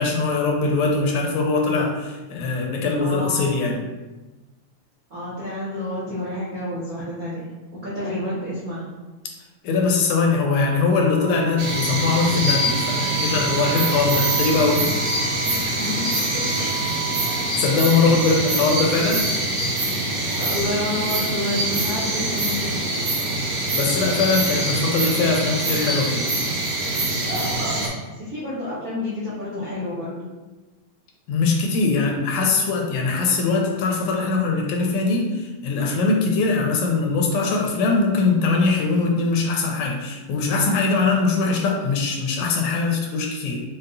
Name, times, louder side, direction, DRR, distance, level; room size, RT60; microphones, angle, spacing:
voice 1, 0.0-3.8 9.6-15.0 17.6-19.3 23.8-26.3 31.3-43.6, left 4 dB, 80° left, 1 dB, 1.8 m, -21 dB
voice 2, 3.0-3.5 5.1-7.5 7.8-8.8 15.4-16.6 20.4-22.8 28.0-30.3, left 1 dB, 85° right, -9 dB, 0.7 m, -29 dB
Wind instrument woodwind instrument, 10.5-18.7, right 9 dB, 40° right, 0.5 m, -33 dB
sound 1, 11.6-27.9, right 1 dB, 65° right, 1.6 m, -24 dB
5.3 x 2.1 x 3.9 m, 1.2 s
omnidirectional pair, 3.3 m